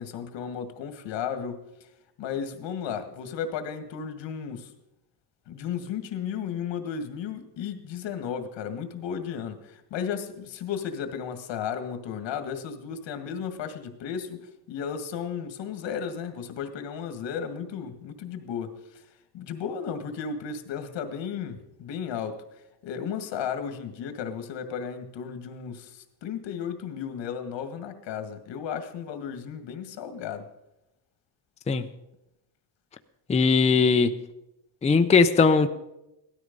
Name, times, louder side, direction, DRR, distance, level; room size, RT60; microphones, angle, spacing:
voice 1, 0.0-1.9 2.2-4.7 5.5-19.1 19.3-22.4 22.8-30.5, left 7 dB, 80° left, 1.9 m, -34 dB
voice 2, 33.3-34.2 34.8-35.7, left 4 dB, 15° left, 0.5 m, -19 dB
17.0 x 13.0 x 5.3 m
cardioid pair, 160°, 43 cm